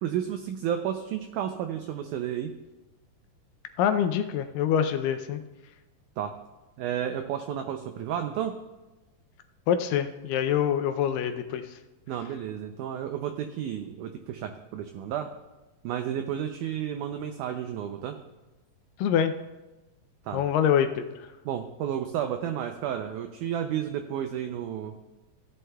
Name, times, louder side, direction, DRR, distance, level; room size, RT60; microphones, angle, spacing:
voice 1, 0.0-2.5 6.2-6.4 6.8-8.6 12.1-15.3 15.8-18.2 20.2-20.4 21.4-25.0, right 9 dB, 90° right, 7 dB, 1.7 m, -32 dB
voice 2, 3.8-5.4 9.7-11.8 19.0-19.3 20.3-21.3, left 9 dB, 80° left, 8 dB, 2.1 m, -25 dB
16.5 x 11.0 x 2.3 m, 1.1 s
omnidirectional pair, 4.2 m